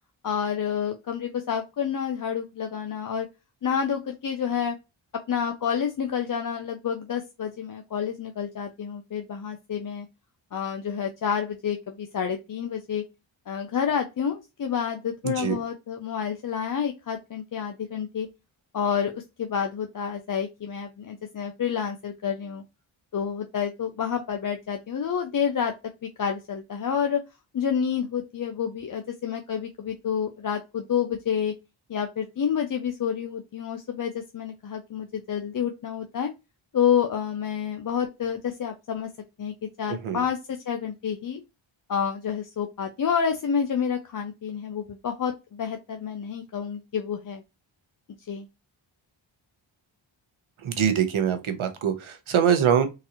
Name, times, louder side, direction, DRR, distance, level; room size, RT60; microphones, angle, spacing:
voice 1, 0.2-3.3 3.6-4.8 5.3-10.1 10.5-13.0 13.5-18.3 18.7-22.6 23.1-25.7 26.0-27.2 27.5-31.5 31.9-36.3 36.7-39.1 39.4-41.4 41.9-47.4 48.3-48.5, left 7 dB, 45° left, 0.5 m, -29 dB
voice 2, 15.2-15.6 40.0-40.2 50.6-52.8, right 8 dB, 80° right, 0.9 m, -23 dB
3.9 x 2.7 x 2.9 m
wide cardioid pair, 95°, 48 cm